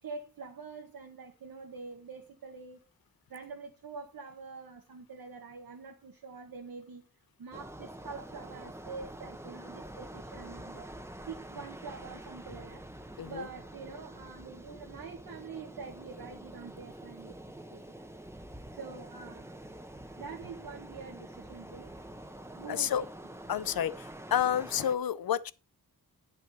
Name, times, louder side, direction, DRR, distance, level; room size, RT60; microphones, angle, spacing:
voice 1, 0.0-2.8 3.3-7.0 7.4-10.9 11.3-12.8 13.2-17.4 17.7-18.1 18.7-19.6 20.2-21.9 22.5-23.1, right 5 dB, 80° right, 1.5 m, -45 dB
sound 1, 7.5-25.0, right 1 dB, 5° right, 0.9 m, -47 dB
voice 2, 22.7-23.0 23.5-25.5, left 9 dB, 80° left, 0.7 m, -30 dB
10.0 x 6.0 x 4.2 m
wide cardioid pair, 75°, 35 cm